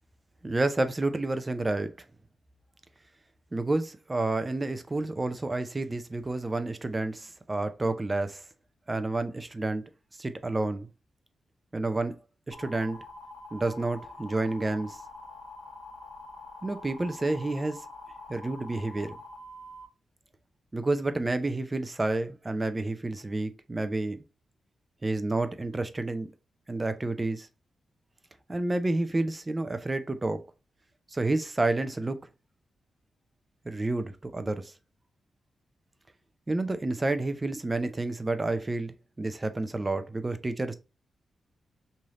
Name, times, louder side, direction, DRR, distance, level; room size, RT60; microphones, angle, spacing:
voice 1, 0.4-1.9 3.5-8.4 8.9-9.8 10.2-10.9 11.7-12.1 12.5-13.0 13.5-15.0 16.6-17.8 18.3-19.1 20.7-24.2 25.0-26.3 26.7-27.5 28.5-30.4 31.1-32.2 33.6-34.7 36.5-40.7, right 2 dB, 20° right, 0.5 m, -29 dB
sound 1, 12.5-19.8, left 2 dB, 65° left, 0.8 m, -45 dB
3.2 x 2.7 x 3.6 m
cardioid pair, 95°, 0 cm